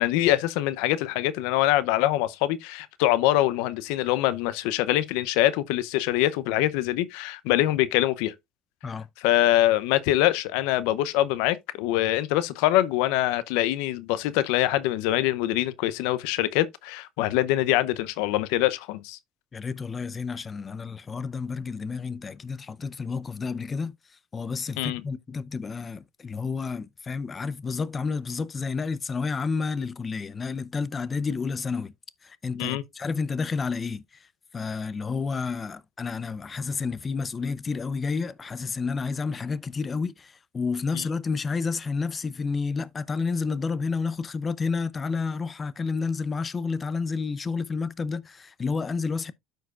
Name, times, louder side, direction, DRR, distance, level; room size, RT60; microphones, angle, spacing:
voice 1, 0.0-8.3 9.2-19.2 24.8-25.0 32.6-32.8 40.9-41.0, left 15 dB, 80° left, 0.6 m, -24 dB
voice 2, 19.5-24.0 24.3-31.9 32.2-34.0 34.5-49.3, left 4 dB, 30° left, 0.5 m, -30 dB
12.5 x 4.6 x 2.4 m
supercardioid pair, 95°, 0 cm